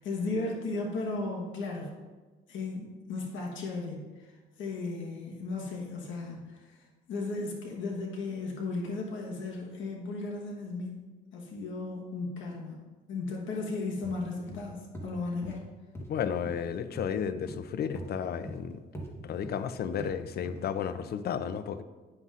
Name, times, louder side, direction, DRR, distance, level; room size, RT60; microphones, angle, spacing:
voice 1, 0.0-1.9 2.5-4.3 4.6-6.8 7.1-11.0 11.3-12.8 13.1-15.6, left 3 dB, 75° left, -1 dB, 1.2 m, -35 dB
sound 1, 14.0-14.2 14.5-14.6 14.9-15.1 15.4-15.6 15.9-16.1 16.5-16.6 17.0-17.1 17.5-17.6 18.0-18.1 18.4-18.6 18.9-19.1 19.4-19.6 20.0-20.1 20.4-20.6 21.0-21.1, right 1 dB, 10° left, 1.2 m, -41 dB
voice 2, 16.1-18.8 19.2-21.8, left 8 dB, 55° left, 12 dB, 0.4 m, -33 dB
9.4 x 5.6 x 2.4 m, 1.3 s
cardioid pair, 90°, 20 cm